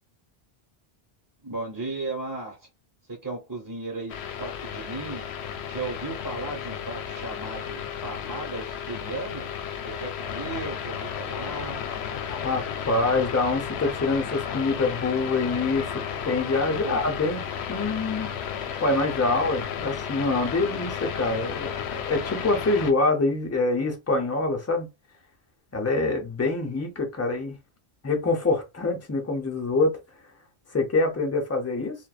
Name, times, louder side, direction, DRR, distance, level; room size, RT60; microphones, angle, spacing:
voice 1, 1.4-2.7 3.1-4.1 4.4-5.2 5.7-9.5 9.8-11.8, right 2 dB, 20° right, 0.9 m, -35 dB
sound 1, 4.1-22.9, left 8 dB, 75° left, 0.8 m, -33 dB
voice 2, 12.3-15.9 16.2-17.4 17.7-18.3 18.8-24.9 25.7-27.6 28.0-30.0 30.7-32.0, left 3 dB, 20° left, 0.6 m, -25 dB
2.5 x 2.2 x 2.3 m
omnidirectional pair, 1.1 m